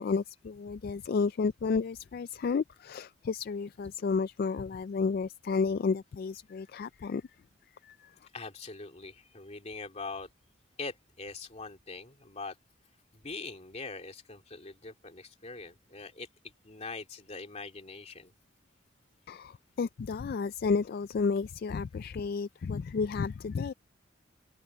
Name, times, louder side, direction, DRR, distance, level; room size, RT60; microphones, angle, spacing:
voice 1, 0.0-7.2 7.8-8.0 19.3-23.7, left 5 dB, 50° left, 0.3 m, -31 dB
voice 2, 8.3-10.3 10.8-12.6 13.1-16.3 16.6-18.3, left 3 dB, 35° left, 3.0 m, -42 dB
head